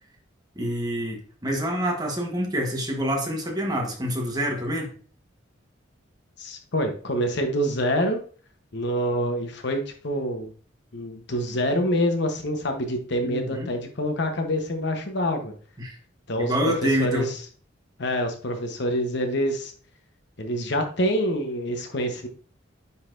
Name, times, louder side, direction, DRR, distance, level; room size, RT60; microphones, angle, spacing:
voice 1, 0.5-4.9 13.2-13.7 15.8-16.0 16.4-17.3, equal, 20° right, 1 dB, 1.2 m, -27 dB
voice 2, 6.4-8.2 8.7-10.5 10.9-15.5 16.3-17.4 18.0-19.7 20.4-22.3, equal, 60° left, 5 dB, 1.0 m, -26 dB
9.7 x 4.0 x 2.6 m, 0.43 s
head